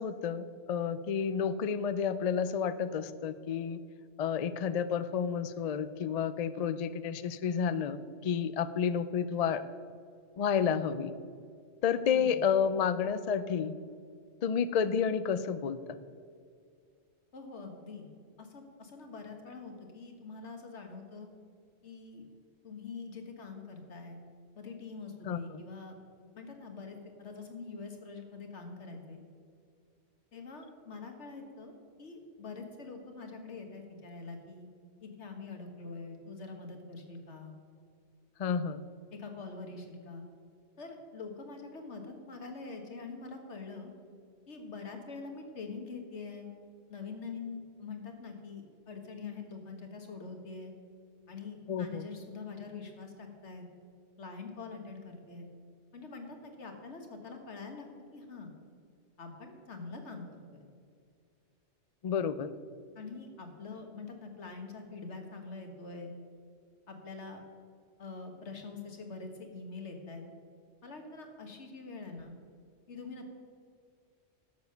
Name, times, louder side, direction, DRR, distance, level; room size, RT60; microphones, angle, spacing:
voice 1, 0.0-3.8 4.2-8.0 8.2-9.6 10.4-11.1 11.8-13.7 14.4-15.8 25.2-25.4 38.4-38.8 51.7-52.1 62.0-62.5, left 7 dB, 55° left, 13 dB, 0.4 m, -30 dB
voice 2, 17.3-18.1 18.4-21.3 21.8-22.2 22.6-24.2 24.6-26.0 26.4-29.2 30.3-34.7 35.0-37.5 39.1-40.2 40.8-43.9 44.5-46.5 46.9-50.7 51.3-53.7 54.2-55.5 55.9-57.9 58.1-58.5 59.2-60.6 63.0-66.1 66.9-67.4 68.0-70.2 70.8-72.3 72.9-73.3, left 4 dB, 75° left, 4 dB, 1.8 m, -44 dB
11.5 x 7.1 x 6.7 m, 2.2 s
omnidirectional pair, 1.2 m